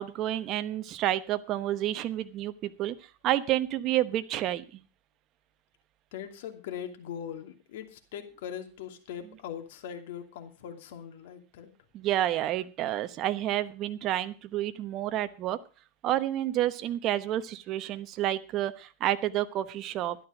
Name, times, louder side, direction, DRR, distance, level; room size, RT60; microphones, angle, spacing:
voice 1, 0.0-2.9 3.2-4.8 11.9-15.6 16.0-20.2, right 13 dB, 35° right, 11 dB, 1.0 m, -29 dB
voice 2, 6.1-11.7, left 9 dB, 70° left, 6 dB, 2.7 m, -41 dB
12.5 x 11.0 x 5.1 m, 0.34 s
supercardioid pair, 150°, 0 cm